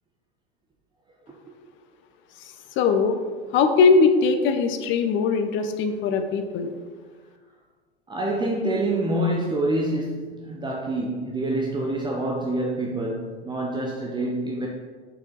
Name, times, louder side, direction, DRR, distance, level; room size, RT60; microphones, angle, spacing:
voice 1, 2.8-3.2 3.5-6.7, left 5 dB, 40° left, 7 dB, 0.7 m, -20 dB
voice 2, 8.1-14.7, right 1 dB, 15° right, -1 dB, 0.7 m, -26 dB
6.3 x 4.9 x 3.8 m, 1.5 s
figure-of-eight pair, 80°, 32 cm